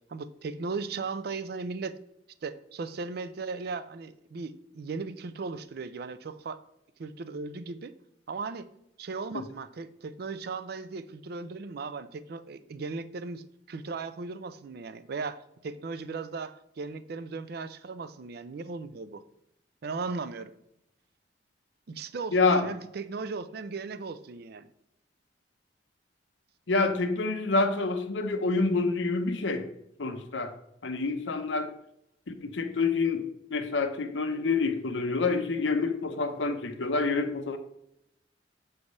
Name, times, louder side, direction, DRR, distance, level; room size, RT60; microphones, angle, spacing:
voice 1, 0.1-2.0 2.4-6.6 7.0-7.9 8.3-8.7 9.0-19.2 19.8-20.5 21.9-24.7, right 4 dB, 60° right, 13 dB, 0.4 m, -37 dB
voice 2, 22.3-22.7 26.7-29.7 30.0-30.5 30.8-31.7 32.3-33.2 33.5-37.6, left 3 dB, 90° left, 8 dB, 0.7 m, -27 dB
7.1 x 3.3 x 5.3 m, 0.80 s
head